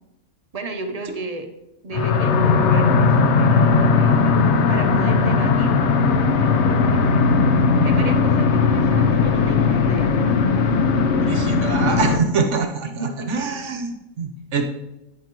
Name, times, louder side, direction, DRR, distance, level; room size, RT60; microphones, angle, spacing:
voice 1, 0.5-1.5 1.8-7.3 7.8-10.1 12.9-13.5, right 3 dB, 40° right, 5 dB, 0.6 m, -33 dB
sound 1, 1.9-12.2, left 4 dB, 60° left, 0.8 m, -18 dB
voice 2, 11.2-14.6, right 5 dB, 60° right, 4 dB, 1.2 m, -24 dB
9.6 x 9.4 x 2.9 m, 0.96 s
omnidirectional pair, 1.5 m